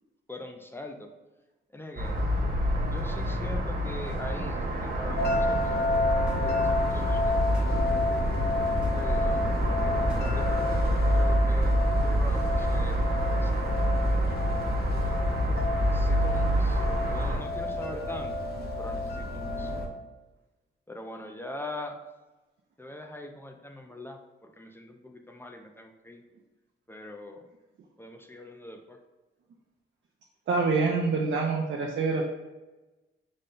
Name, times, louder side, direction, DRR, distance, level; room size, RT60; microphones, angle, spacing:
voice 1, 0.3-1.1 1.7-2.2 2.9-5.9 6.4-8.0 9.0-9.5 10.3-13.6 14.0-14.4 15.8-18.3 18.8-19.7 20.9-22.0 22.8-26.2 26.9-27.5 28.0-29.0, left 1 dB, 10° left, 3 dB, 0.3 m, -43 dB
sound 1, 2.0-17.4, right 1 dB, 50° right, 1.0 m, -27 dB
sound 2, 5.2-19.9, left 2 dB, 50° left, 0.7 m, -30 dB
sound 3, 5.6-10.7, right 1 dB, 5° right, 0.8 m, -47 dB
voice 2, 30.5-32.2, right 4 dB, 65° right, 0 dB, 0.5 m, -26 dB
5.2 x 2.2 x 3.7 m, 1.1 s
wide cardioid pair, 140°, 21 cm